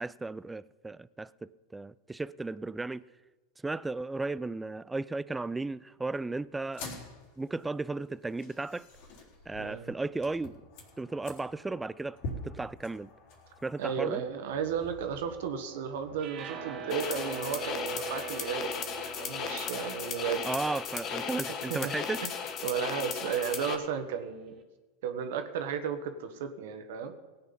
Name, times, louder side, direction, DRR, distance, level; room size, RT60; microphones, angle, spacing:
voice 1, 0.0-3.0 3.6-7.0 7.4-8.9 9.5-10.6 11.0-12.2 12.4-13.1 13.6-14.2 20.4-22.3, right 3 dB, 10° right, 0.4 m, -35 dB
sound 1, 6.6-16.2, left 2 dB, 60° left, 3.6 m, -47 dB
voice 2, 9.6-9.9 13.8-20.4 21.7-21.9 22.6-24.5 25.0-27.1, right 7 dB, 70° right, 1.5 m, -34 dB
sound 2, 16.2-22.5, right 5 dB, 45° right, 2.1 m, -43 dB
sound 3, 16.9-23.7, left 6 dB, 45° left, 1.4 m, -36 dB
17.5 x 8.8 x 5.5 m
hypercardioid pair, 100°, 0 cm